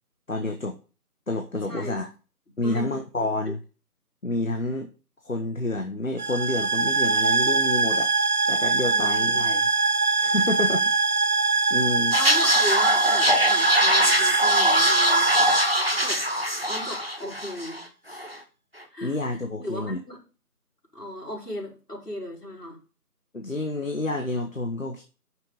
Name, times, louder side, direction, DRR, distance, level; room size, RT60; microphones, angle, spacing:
voice 1, 0.3-0.7 1.3-2.1 2.6-3.6 4.2-4.9 5.2-8.1 8.5-9.7 10.2-10.9 11.7-12.1 19.0-20.0 23.3-25.0, left 2 dB, 55° left, 5 dB, 1.2 m, -29 dB
voice 2, 1.7-2.1 2.6-3.0 3.5-3.6 8.9-9.5 12.1-15.3 16.0-16.2 16.7-18.3 18.9-19.2 19.6-20.2 20.9-22.8, left 1 dB, 80° left, -2 dB, 4.9 m, -36 dB
sound 1, 6.2-16.7, right 4 dB, 65° right, 1.0 m, -23 dB
sound 2, 12.1-17.8 18.1-18.4, equal, 40° right, 1.0 m, -23 dB
9.2 x 6.2 x 4.0 m, 0.35 s
figure-of-eight pair, 175°, 47 cm